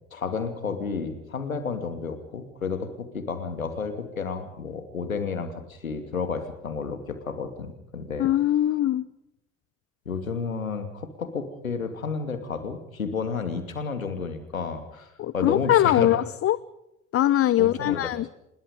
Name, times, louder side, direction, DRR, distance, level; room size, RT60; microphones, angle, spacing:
voice 1, 0.1-8.3 10.1-16.1 17.6-18.1, left 5 dB, 90° left, 8 dB, 2.6 m, -31 dB
voice 2, 8.2-9.0 15.2-16.6 17.1-18.3, left 13 dB, 35° left, 19 dB, 0.7 m, -22 dB
25.5 x 21.5 x 5.1 m, 0.87 s
hypercardioid pair, 65°, 40 cm